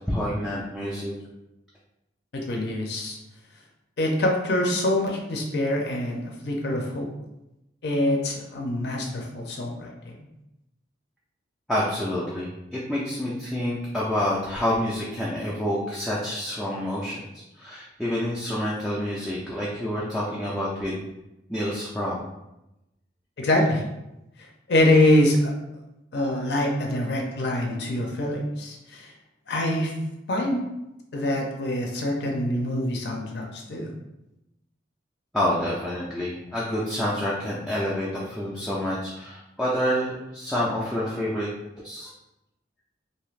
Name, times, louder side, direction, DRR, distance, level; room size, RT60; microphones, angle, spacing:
voice 1, 0.1-1.1 11.7-21.0 21.5-22.2 35.3-41.5 41.8-42.1, equal, ahead, -8 dB, 0.4 m, -28 dB
voice 2, 2.3-3.2 4.0-7.1 7.8-10.1 23.4-23.8 24.7-25.5 26.1-29.1 29.5-29.9 30.3-30.6 31.1-33.9, left 1 dB, 60° left, 0 dB, 0.5 m, -24 dB
2.6 x 2.4 x 3.1 m, 0.93 s
head